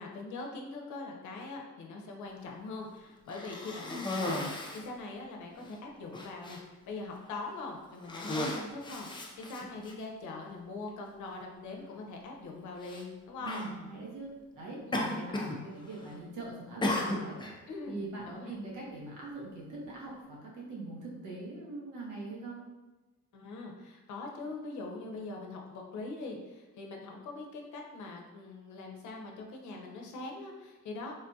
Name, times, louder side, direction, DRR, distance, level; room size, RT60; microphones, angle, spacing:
voice 1, 0.0-13.7 14.9-15.1 17.7-18.5 23.3-31.2, left 3 dB, 70° left, 1 dB, 0.7 m, -42 dB
Cough, 3.3-4.9 5.6-5.7 6.1-6.6 7.4-7.6 8.0-9.9 10.9-11.0 12.8-13.0 13.4-13.7 14.9-15.6 15.9-16.3 16.8-17.6, left 1 dB, 15° left, 0.4 m, -35 dB
voice 2, 13.4-22.6, right 2 dB, 85° right, -3 dB, 1.0 m, -42 dB
3.5 x 2.3 x 2.6 m, 1.2 s
cardioid pair, 90°, 30 cm